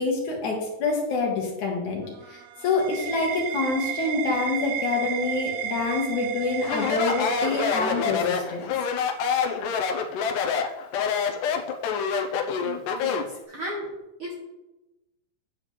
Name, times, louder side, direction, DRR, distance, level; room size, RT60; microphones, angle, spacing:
voice 1, 0.0-8.6, left 3 dB, 65° left, 0 dB, 2.8 m, -27 dB
sound 1, 2.1-8.5, right 10 dB, 75° right, 1.8 m, -33 dB
Speech, 6.6-13.3, left 6 dB, 80° left, 2.2 m, -26 dB
voice 2, 12.6-13.9 14.2-14.3, equal, 55° right, -3 dB, 1.7 m, -35 dB
9.0 x 7.5 x 3.3 m, 0.99 s
omnidirectional pair, 3.8 m